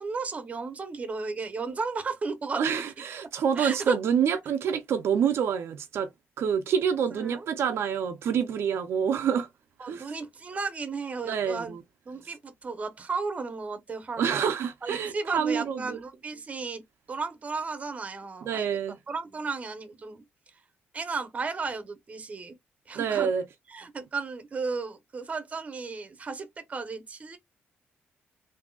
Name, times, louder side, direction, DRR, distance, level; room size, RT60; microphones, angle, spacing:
voice 1, 0.0-2.7 3.6-4.0 7.1-7.5 9.8-11.7 12.1-14.5 14.8-16.8 17.1-18.7 19.1-20.2 20.9-22.5 22.9-23.3 23.7-27.4, right 4 dB, 30° right, 0.8 m, -34 dB
voice 2, 2.6-6.1 6.4-9.5 9.9-10.0 11.3-11.8 14.2-16.0 18.4-19.0 23.0-23.4, right 7 dB, 70° right, 0.5 m, -27 dB
3.6 x 2.7 x 2.3 m
cardioid pair, 120°, 4 cm